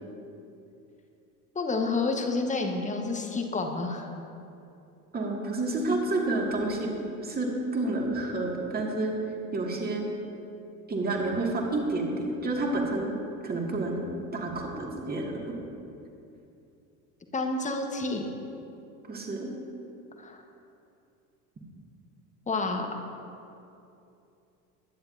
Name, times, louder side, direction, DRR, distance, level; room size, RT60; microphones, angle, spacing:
voice 1, 1.5-4.1 17.3-18.3 20.2-20.4 22.5-22.9, left 3 dB, 15° left, 3 dB, 1.4 m, -29 dB
voice 2, 5.1-6.9 7.2-9.1 9.5-10.1 10.9-13.1 13.4-14.0 14.3-15.6 19.1-19.5, right 2 dB, 20° right, 0 dB, 2.2 m, -29 dB
22.5 x 10.5 x 2.8 m, 2.7 s
figure-of-eight pair, 70°, 45 cm